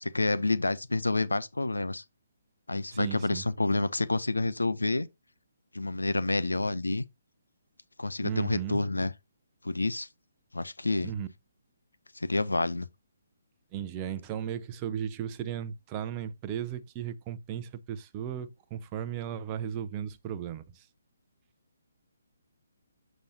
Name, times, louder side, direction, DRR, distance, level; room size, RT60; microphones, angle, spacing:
voice 1, 0.0-2.0 2.7-5.1 5.7-7.0 8.0-9.1 9.6-10.1 10.5-11.1 12.1-12.9, left 2 dB, 80° left, 0.5 m, -28 dB
voice 2, 2.9-3.4 8.2-8.8 11.0-11.3 13.7-20.9, right 9 dB, 25° right, 0.6 m, -35 dB
6.9 x 6.1 x 2.7 m
figure-of-eight pair, 135°, 0 cm